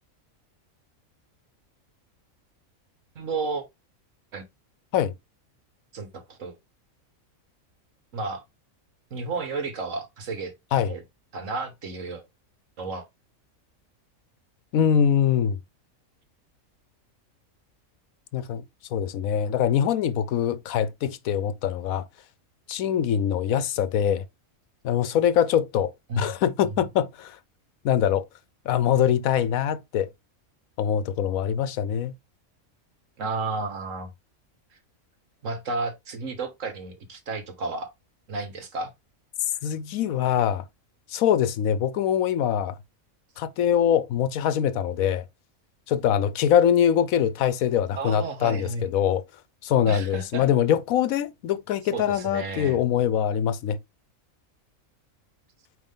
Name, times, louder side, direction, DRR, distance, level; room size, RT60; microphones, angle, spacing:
voice 1, 3.2-3.6 4.3-4.4 5.9-6.6 8.1-8.4 9.1-10.5 10.9-11.0 11.3-12.2 12.8-13.1 26.1-26.3 33.2-34.1 35.4-37.9 38.3-38.9 48.0-48.9 49.9-50.5 51.9-52.8, right 3 dB, 65° right, 1.6 m, -32 dB
voice 2, 14.7-15.6 18.3-18.6 18.9-22.1 22.7-24.2 24.8-25.9 26.2-27.4 27.8-28.3 28.6-30.1 30.8-32.1 39.6-40.6 41.1-42.8 43.4-45.2 45.9-49.2 49.6-53.8, left 9 dB, 80° left, 1.1 m, -23 dB
8.9 x 3.2 x 3.7 m
omnidirectional pair, 1.4 m